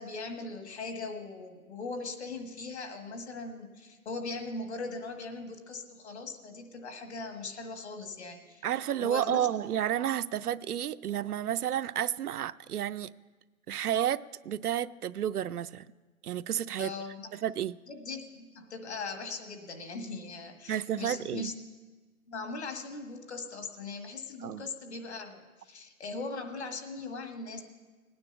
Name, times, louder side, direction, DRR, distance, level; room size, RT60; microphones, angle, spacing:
voice 1, 0.0-8.7 9.0-9.5 16.8-17.3 17.9-21.6 22.3-27.6, left 3 dB, 50° left, 5 dB, 1.7 m, -40 dB
voice 2, 8.6-13.1 13.7-15.9 16.2-16.9 17.3-17.8 20.7-21.5 24.4-24.7, right 10 dB, 85° right, 13 dB, 0.6 m, -31 dB
18.0 x 9.7 x 6.9 m, 1.4 s
hypercardioid pair, 175°, 44 cm